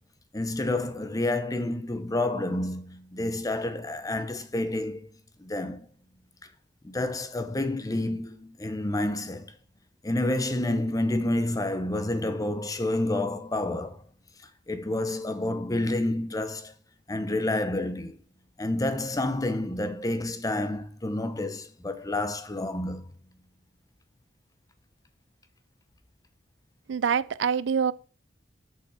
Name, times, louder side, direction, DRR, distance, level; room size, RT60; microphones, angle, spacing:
voice 1, 0.3-5.1 5.4-5.9 6.8-9.5 10.0-14.0 14.7-16.7 17.1-18.1 18.6-23.0, left 1 dB, 20° left, 0.7 m, -29 dB
voice 2, 26.9-27.9, right 7 dB, 75° right, 0.4 m, -25 dB
6.9 x 5.6 x 4.8 m
head